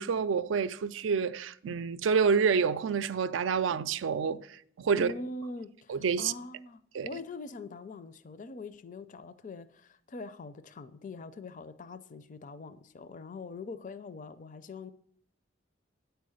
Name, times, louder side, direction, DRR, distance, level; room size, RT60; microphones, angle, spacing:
voice 1, 0.0-4.5 4.8-5.1 5.9-6.3 6.9-7.1, right 6 dB, 85° right, 0.4 m, -28 dB
voice 2, 4.9-14.9, left 3 dB, 45° left, 0.4 m, -43 dB
9.2 x 4.6 x 6.4 m
head